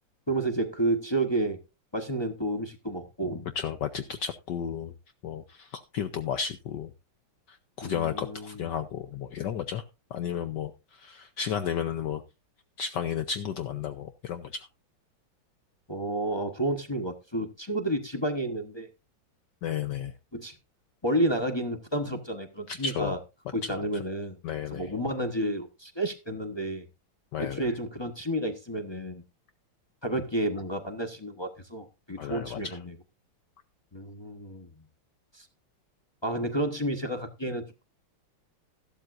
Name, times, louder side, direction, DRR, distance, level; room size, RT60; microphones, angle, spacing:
voice 1, 0.3-1.6 1.9-3.5 7.8-8.7 15.9-18.9 20.3-20.5 21.0-23.2 23.5-24.4 24.7-26.8 27.4-29.2 30.0-32.9 33.9-34.7 35.3-35.5 36.2-37.8, right 1 dB, 20° left, 4 dB, 0.6 m, -31 dB
voice 2, 3.6-4.9 5.2-6.9 7.5-9.8 10.1-12.2 12.8-14.7 19.6-20.1 22.7-23.2 23.6-23.7 24.4-24.9 27.3-27.7 32.2-32.8, left 8 dB, 65° left, 9 dB, 1.2 m, -33 dB
13.5 x 12.5 x 2.5 m, 0.26 s
omnidirectional pair, 2.3 m